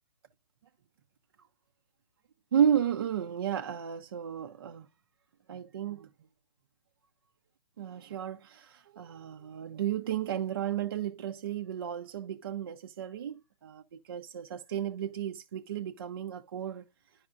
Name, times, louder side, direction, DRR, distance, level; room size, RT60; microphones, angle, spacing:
voice 1, 2.5-4.9 5.5-6.1 7.8-16.9, right 9 dB, 40° right, 0.4 m, -33 dB
11.0 x 4.8 x 2.4 m
figure-of-eight pair, 140°, 20 cm